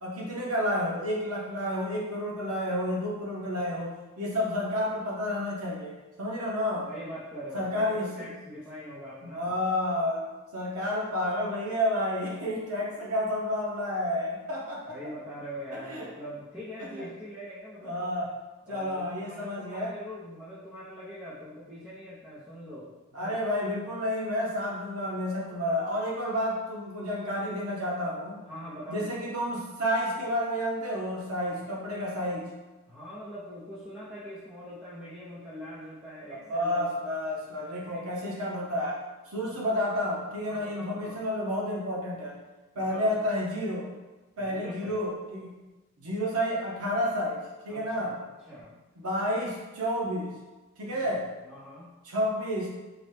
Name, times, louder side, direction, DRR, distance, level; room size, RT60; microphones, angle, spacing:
voice 1, 0.0-6.9 7.5-8.3 9.2-10.2 10.5-15.0 15.9-16.1 16.9-17.1 17.8-18.3 18.7-19.9 23.1-28.3 28.9-32.5 36.3-39.0 39.3-42.3 42.7-43.9 44.4-45.6 46.0-47.4 47.6-48.1 49.0-50.3 50.8-51.3 52.0-52.7, left 1 dB, 90° right, -4 dB, 0.8 m, -30 dB
voice 2, 6.8-9.6 14.9-18.1 18.6-23.3 28.5-29.2 32.9-36.9 37.6-38.0 39.4-39.5 40.5-41.2 42.7-43.1 44.4-45.0 47.7-48.1 48.5-48.7 50.9-52.0, equal, 5° right, -11 dB, 0.6 m, -43 dB
3.9 x 2.2 x 3.2 m, 1.1 s
head